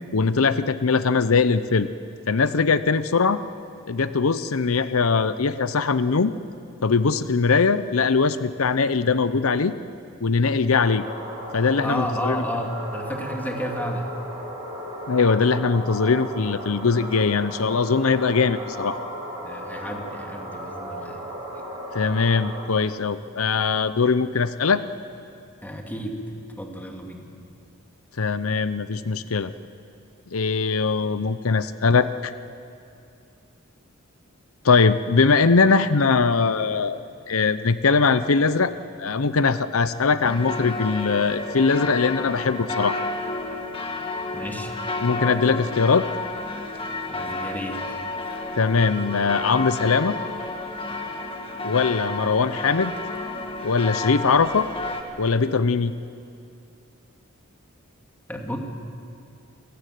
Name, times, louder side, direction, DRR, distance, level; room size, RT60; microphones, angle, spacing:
voice 1, 0.1-1.9 2.3-3.4 3.9-6.3 6.8-9.7 10.2-11.0 11.5-12.4 15.1-19.0 21.9-24.8 28.2-29.5 30.3-32.3 34.6-37.0 37.3-38.7 39.0-43.0 45.0-46.1 48.6-50.2 51.6-52.9 53.6-54.7 55.2-55.9, left 4 dB, 85° left, 13 dB, 0.7 m, -21 dB
sound 1, 10.8-22.6, equal, 25° right, 6.2 m, -35 dB
voice 2, 11.8-14.1 19.4-21.2 25.6-26.2 26.6-27.2 44.3-44.7 47.1-48.0 58.3-58.6, equal, 10° left, 2 dB, 2.6 m, -32 dB
sound 2, 40.2-55.0, left 2 dB, 25° left, 2.0 m, -31 dB
28.5 x 16.5 x 9.3 m, 2.5 s
head